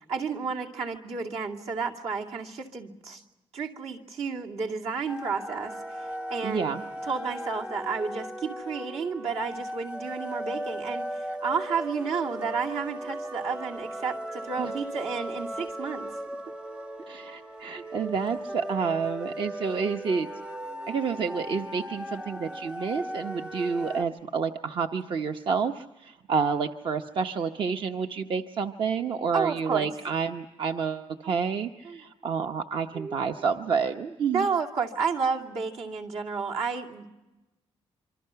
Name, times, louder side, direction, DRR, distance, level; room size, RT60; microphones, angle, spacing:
voice 1, 0.1-3.2 3.5-6.7 7.1-16.1 29.3-29.9 31.2-31.4 31.8-32.0 32.9-33.3 34.3-37.1, right 5 dB, 70° right, -1 dB, 2.6 m, -31 dB
sound 1, 5.1-24.0, right 1 dB, 5° right, 0.7 m, -37 dB
voice 2, 6.4-6.8 14.6-14.7 17.1-20.3 20.9-34.5, right 5 dB, 50° right, 6 dB, 0.8 m, -29 dB
26.5 x 25.0 x 5.7 m, 1.1 s
wide cardioid pair, 170°, 11 cm